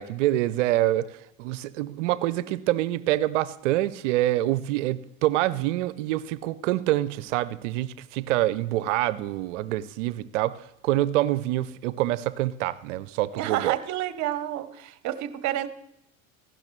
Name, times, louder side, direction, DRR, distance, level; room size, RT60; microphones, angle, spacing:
voice 1, 0.0-13.8, right 15 dB, 65° right, 0.7 m, -26 dB
voice 2, 13.3-15.7, right 13 dB, 45° right, 1.1 m, -29 dB
15.0 x 11.5 x 3.2 m
figure-of-eight pair, 75°, 40 cm